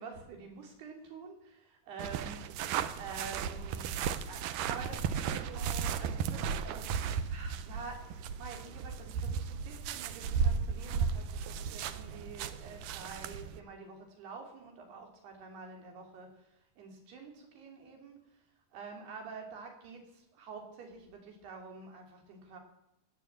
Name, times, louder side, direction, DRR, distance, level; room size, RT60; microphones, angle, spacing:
voice 1, 0.0-7.0 7.3-16.5 16.8-18.2 18.7-22.6, right 4 dB, 70° right, 3 dB, 4.9 m, -48 dB
sound 1, 2.0-13.6, right 7 dB, 85° right, 1.9 m, -35 dB
16.5 x 9.3 x 8.7 m, 0.87 s
omnidirectional pair, 4.9 m